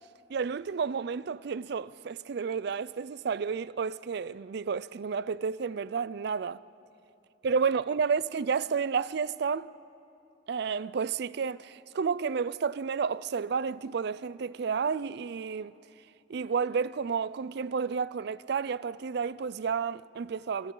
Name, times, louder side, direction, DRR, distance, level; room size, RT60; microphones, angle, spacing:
voice 1, 0.3-6.6 7.4-9.7 10.5-15.7 16.3-20.7, right 6 dB, 65° right, 0.4 m, -31 dB
27.5 x 26.5 x 3.9 m
head